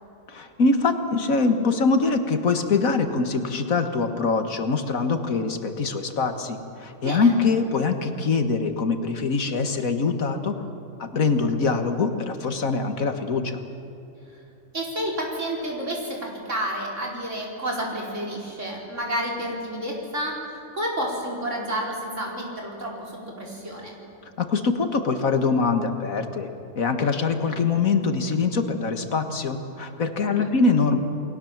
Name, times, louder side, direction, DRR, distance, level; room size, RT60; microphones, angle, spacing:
voice 1, 0.3-10.6 11.0-13.6 24.4-26.5 26.8-31.0, left 4 dB, 80° left, 7 dB, 2.1 m, -23 dB
voice 2, 7.0-7.3 14.7-24.0 30.2-30.5, right 1 dB, 60° right, -2 dB, 5.0 m, -30 dB
29.5 x 20.5 x 7.4 m, 2.8 s
omnidirectional pair, 1.4 m